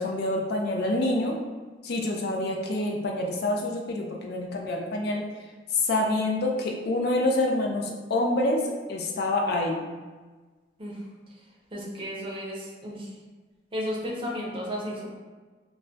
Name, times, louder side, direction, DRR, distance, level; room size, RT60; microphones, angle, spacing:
voice 1, 0.0-1.4 1.8-5.2 5.7-9.8, left 2 dB, 60° left, 0 dB, 0.4 m, -27 dB
voice 2, 11.7-13.2 13.7-15.1, equal, 30° right, -3 dB, 0.5 m, -33 dB
2.2 x 2.2 x 3.7 m, 1.3 s
head